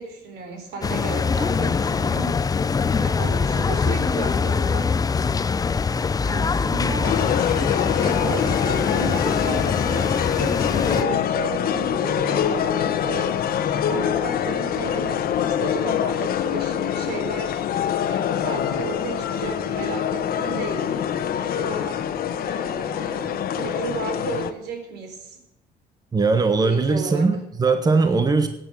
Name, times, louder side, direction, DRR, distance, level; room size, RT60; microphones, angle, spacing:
voice 1, 0.0-2.4 3.0-4.9 6.2-7.2 7.9-13.4 13.7-17.6 18.1-21.1 21.4-22.1 22.4-25.4 26.6-27.3, right 4 dB, 80° right, 5 dB, 4.0 m, -34 dB
sound 1, 0.8-11.0, left 5 dB, 20° left, 0.5 m, -23 dB
sound 2, 7.0-24.5, left 9 dB, 60° left, 1.2 m, -25 dB
voice 2, 26.1-28.5, right 4 dB, 20° right, 8 dB, 1.3 m, -20 dB
16.0 x 9.3 x 6.3 m, 0.83 s
cardioid pair, 110°, 17 cm